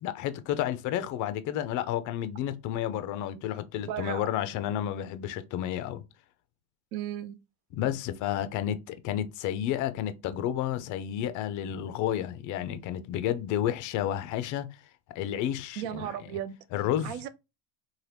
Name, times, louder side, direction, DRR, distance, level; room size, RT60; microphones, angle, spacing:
voice 1, 0.0-6.0 7.7-14.7 15.2-16.1 16.7-17.1, left 11 dB, 40° left, 0.4 m, -31 dB
voice 2, 3.8-4.3 6.9-7.4 15.8-16.6 17.0-17.3, right 11 dB, 60° right, 0.5 m, -35 dB
2.8 x 2.2 x 3.2 m
supercardioid pair, 130°, 47 cm